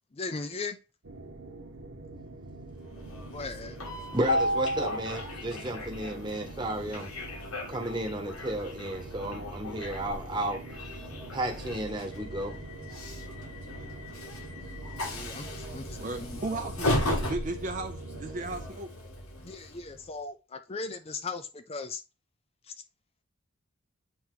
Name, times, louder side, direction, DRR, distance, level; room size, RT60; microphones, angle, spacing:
voice 1, 0.1-0.8 3.3-3.8 15.0-16.6 19.4-22.0 22.7-22.8, left 4 dB, 25° left, 0.4 m, -38 dB
sound 1, 1.0-18.7, right 2 dB, 75° right, 1.0 m, -45 dB
Train, 2.8-20.1, left 1 dB, 85° left, 1.5 m, -36 dB
voice 2, 4.1-7.1 7.7-10.6 11.3-12.6, right 1 dB, 20° right, 1.3 m, -33 dB
voice 3, 16.0-18.9, right 2 dB, 35° right, 0.5 m, -35 dB
8.5 x 2.9 x 3.8 m
head